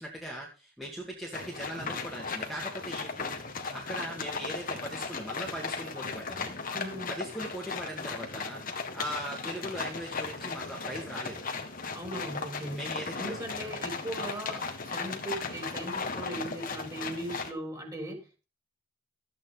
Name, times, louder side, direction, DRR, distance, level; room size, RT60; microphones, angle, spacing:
voice 1, 0.0-3.4 3.7-6.6 7.1-8.6 8.9-11.4 12.7-13.4, equal, ahead, -3 dB, 2.2 m, -39 dB
sound 1, 1.3-17.5, left 4 dB, 45° left, 1.7 m, -37 dB
voice 2, 6.7-7.1 11.9-12.8 13.2-18.4, right 1 dB, 20° right, 2 dB, 3.8 m, -38 dB
14.0 x 8.8 x 4.0 m, 0.32 s
head